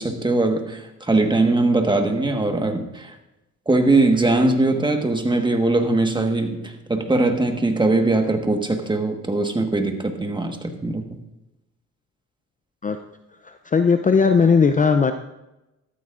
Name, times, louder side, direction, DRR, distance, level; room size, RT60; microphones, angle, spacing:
voice 1, 0.0-3.1 3.7-11.0, right 2 dB, 15° right, 4 dB, 1.4 m, -21 dB
voice 2, 13.4-15.1, left 5 dB, 25° left, 8 dB, 0.5 m, -17 dB
14.0 x 12.5 x 2.5 m, 0.96 s
cardioid pair, 90°, 30 cm